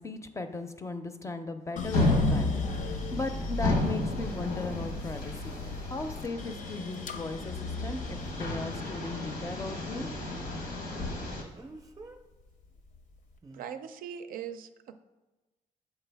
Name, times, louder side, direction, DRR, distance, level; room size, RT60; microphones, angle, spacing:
voice 1, 0.0-5.5 5.9-10.1, left 2 dB, 20° left, 8 dB, 0.5 m, -37 dB
sound 1, 1.8-12.0 12.4-13.2, left 4 dB, 65° left, 0.6 m, -37 dB
sound 2, 1.9-11.4, left 2 dB, 90° left, 1.1 m, -33 dB
Speech, 6.2-6.3 11.5-12.2 13.4-13.7, right 2 dB, 25° right, 0.6 m, -48 dB
voice 2, 13.5-15.0, right 8 dB, 80° right, 9 dB, 0.5 m, -40 dB
6.8 x 4.5 x 3.4 m, 1.1 s
cardioid pair, 105°, 14 cm